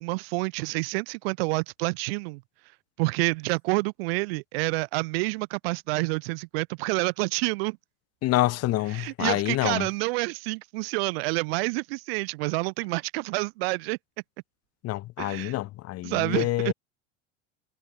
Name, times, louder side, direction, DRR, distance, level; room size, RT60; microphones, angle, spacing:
voice 1, 0.0-2.4 3.0-7.8 8.9-14.0 15.2-15.6 16.0-16.7, right 26 dB, 55° right, 0.9 m, -28 dB
voice 2, 8.2-9.9 14.8-16.7, left 16 dB, 45° left, 2.1 m, -27 dB
figure-of-eight pair, 75°, 35 cm